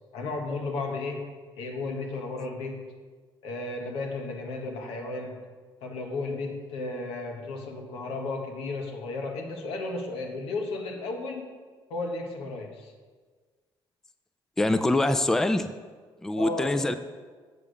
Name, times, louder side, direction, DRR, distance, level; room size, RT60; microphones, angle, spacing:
voice 1, 0.1-2.9 3.4-5.5 5.8-11.5 11.9-12.9 16.4-17.0, left 3 dB, 90° left, 2 dB, 1.3 m, -34 dB
voice 2, 14.6-15.7 16.2-16.9, left 2 dB, 5° left, 10 dB, 0.3 m, -24 dB
7.2 x 6.6 x 5.1 m, 1.5 s
cardioid pair, 130°, 9 cm